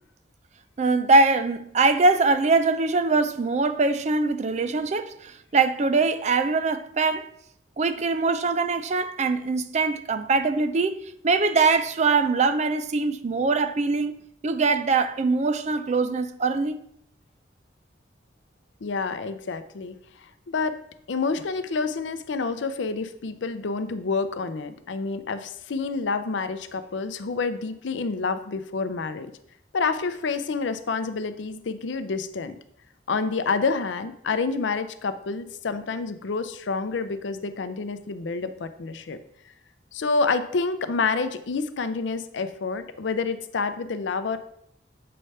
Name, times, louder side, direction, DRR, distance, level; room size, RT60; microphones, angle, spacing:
voice 1, 0.8-7.3 7.8-11.0 11.2-14.2 14.4-16.8, right 3 dB, 35° right, 0.4 m, -22 dB
voice 2, 18.8-20.8 21.1-29.3 29.7-32.6 33.1-39.2 39.9-44.4, left 4 dB, 75° left, 0.5 m, -28 dB
7.6 x 3.3 x 5.4 m
head